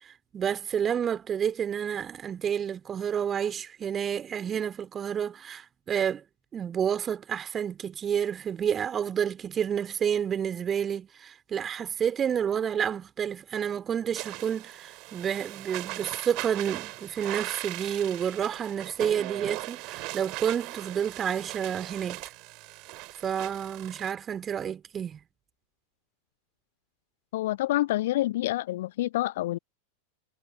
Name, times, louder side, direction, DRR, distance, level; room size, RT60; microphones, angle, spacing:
voice 1, 0.3-6.2 6.5-22.2 23.2-25.2, right 8 dB, 25° right, 3.4 m, -30 dB
sound 1, 14.2-24.1, right 24 dB, 40° right, 3.3 m, -39 dB
voice 2, 27.3-29.6, left 15 dB, 55° left, 0.6 m, -27 dB
figure-of-eight pair, 90°, 0 cm